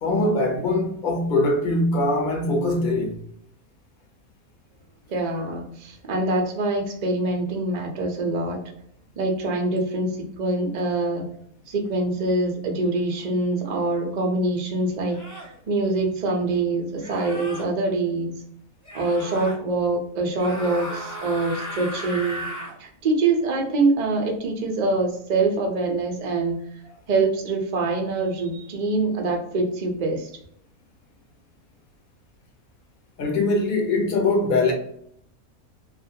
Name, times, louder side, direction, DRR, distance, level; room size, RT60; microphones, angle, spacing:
voice 1, 0.0-3.2 33.2-34.7, left 2 dB, 55° left, 0.6 m, -22 dB
voice 2, 5.1-8.6 9.2-11.3 11.7-18.3 18.9-22.5 22.8-26.6 27.1-30.3, right 2 dB, 80° right, 0.4 m, -24 dB
sound 1, 13.7-13.9 15.1-15.5 17.0-17.7 18.8-19.6 20.3-22.8, equal, 15° left, 0.7 m, -35 dB
2.4 x 2.2 x 2.7 m
omnidirectional pair, 1.6 m